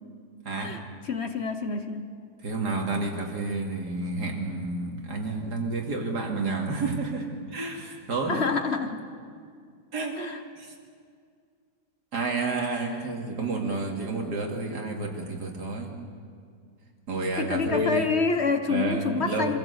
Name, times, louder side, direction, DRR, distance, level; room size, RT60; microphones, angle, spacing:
voice 1, 1.0-2.1 8.3-9.0 10.2-10.4 12.8-13.0 17.4-19.6, left 4 dB, 45° left, 7 dB, 1.2 m, -27 dB
voice 2, 2.4-8.4 9.9-10.2 10.6-10.7 12.1-15.9 17.1-18.1 18.7-19.6, right 3 dB, 80° right, 1 dB, 3.0 m, -30 dB
24.5 x 15.5 x 8.2 m, 2.2 s
omnidirectional pair, 1.7 m